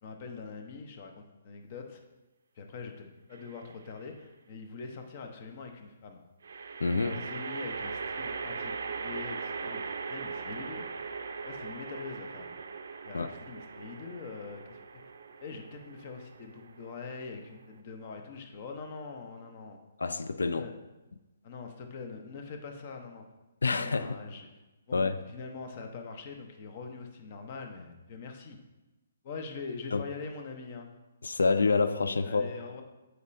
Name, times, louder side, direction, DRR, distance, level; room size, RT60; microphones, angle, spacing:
voice 1, 0.0-2.0 2.6-6.2 7.0-10.9 11.4-12.5 13.0-14.8 15.4-19.8 20.5-20.7 21.4-23.2 23.7-24.5 24.9-28.6 29.2-30.9 32.2-32.8, left 4 dB, 40° left, 5 dB, 0.8 m, -43 dB
sound 1, 3.3-3.9 6.4-17.8, right 5 dB, 60° right, 0.5 m, -40 dB
voice 2, 6.8-7.1 13.1-13.3 20.0-20.7 23.6-24.1 24.9-25.1 29.9-30.0 31.2-32.5, left 4 dB, 70° left, 11 dB, 0.3 m, -27 dB
8.0 x 4.6 x 2.6 m, 1.1 s
figure-of-eight pair, 130°, 0 cm